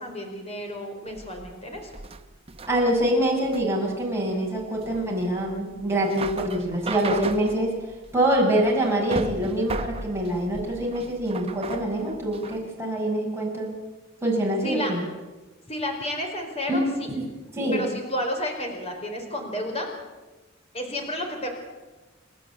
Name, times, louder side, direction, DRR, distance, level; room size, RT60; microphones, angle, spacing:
voice 1, 0.0-1.9 14.6-14.9 15.7-17.1 17.7-19.9 20.7-21.5, left 1 dB, 30° left, 3 dB, 4.5 m, -31 dB
sound 1, 1.1-12.7, right 3 dB, 30° right, 1.1 m, -36 dB
voice 2, 2.7-7.8 8.1-13.7 14.2-15.0 16.7-17.3 17.5-17.9, right 1 dB, 15° right, -2 dB, 6.0 m, -25 dB
30.0 x 13.0 x 8.3 m, 1.2 s
head